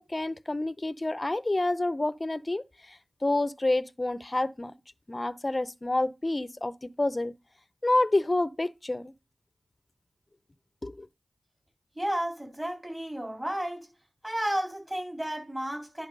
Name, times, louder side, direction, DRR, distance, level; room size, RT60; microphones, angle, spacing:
voice 1, 0.0-4.7 5.1-7.3 7.8-9.1 10.8-11.1, left 2 dB, 30° left, 0.6 m, -28 dB
voice 2, 12.0-13.9 14.2-16.1, right 1 dB, 20° right, 3.9 m, -32 dB
10.5 x 4.1 x 5.3 m
cardioid pair, 45°, 0 cm